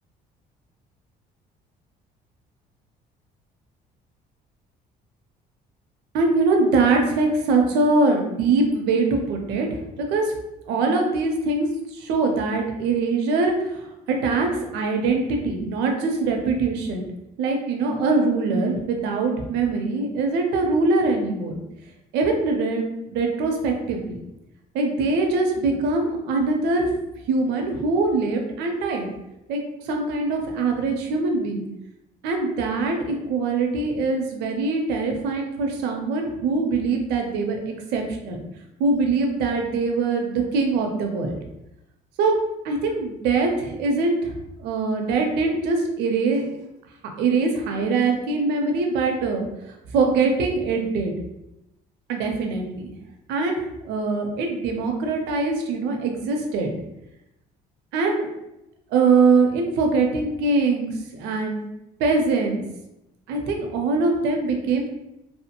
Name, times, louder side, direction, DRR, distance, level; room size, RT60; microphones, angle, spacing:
voice 1, 6.1-9.7 10.0-10.3 10.7-13.8 14.1-17.1 17.4-21.5 22.1-24.2 24.7-26.9 27.3-29.1 29.5-31.6 32.2-38.4 38.8-41.4 42.2-42.4 42.6-44.3 44.6-46.4 47.2-49.4 49.9-51.1 52.1-52.9 53.3-56.7 57.9-58.3 58.9-61.6 62.0-62.6 63.3-64.9, right 3 dB, 90° right, 2 dB, 0.6 m, -23 dB
2.9 x 2.1 x 2.8 m, 0.89 s
cardioid pair, 110°, 17 cm